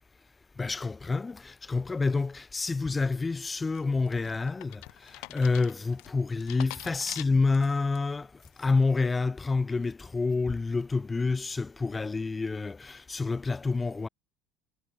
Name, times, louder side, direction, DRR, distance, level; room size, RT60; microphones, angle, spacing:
voice 1, 0.6-8.3 8.6-14.1, left 3 dB, 20° left, 0.6 m, -28 dB
sound 1, 3.7-8.0 8.4-8.8, left 29 dB, 65° left, 4.7 m, -45 dB
hypercardioid pair, 65°, 0 cm